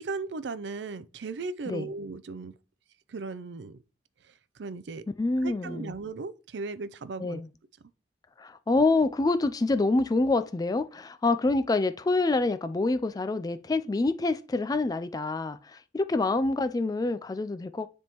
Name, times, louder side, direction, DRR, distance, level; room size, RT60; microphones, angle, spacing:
voice 1, 0.0-2.5 3.1-3.8 4.3-5.0 5.4-7.4, right 4 dB, 75° right, 0.5 m, -37 dB
voice 2, 5.2-5.9 7.2-7.5 8.4-17.9, left 3 dB, 20° left, 0.3 m, -26 dB
9.9 x 3.6 x 3.0 m
head